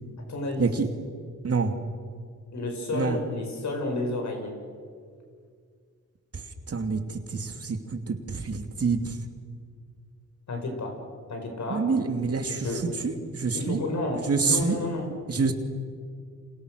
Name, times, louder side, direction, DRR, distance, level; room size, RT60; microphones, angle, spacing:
voice 1, 0.3-0.7 2.5-4.5 10.5-11.0 11.3-11.9 12.5-12.9 13.5-15.1, left 2 dB, 70° left, 3 dB, 6.3 m, -31 dB
voice 2, 6.7-9.2 11.7-12.7 13.0-13.8 14.2-14.8 15.3-15.5, right 4 dB, 50° right, 6 dB, 2.7 m, -27 dB
30.0 x 27.0 x 6.6 m, 2.1 s
cardioid pair, 70°, 30 cm